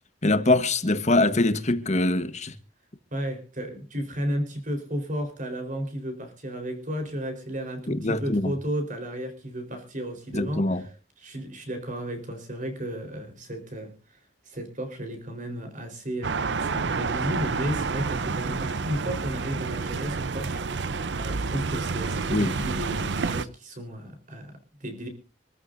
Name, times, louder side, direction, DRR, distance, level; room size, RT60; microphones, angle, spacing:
voice 1, 0.2-2.5 7.9-8.5 10.3-10.8 22.3-22.5, left 2 dB, 40° left, 1.3 m, -23 dB
voice 2, 3.1-14.2 14.4-25.1, equal, 50° right, 4.2 m, -34 dB
sound 1, 16.2-23.5, right 4 dB, 85° right, 0.7 m, -29 dB
26.0 x 13.5 x 2.7 m
head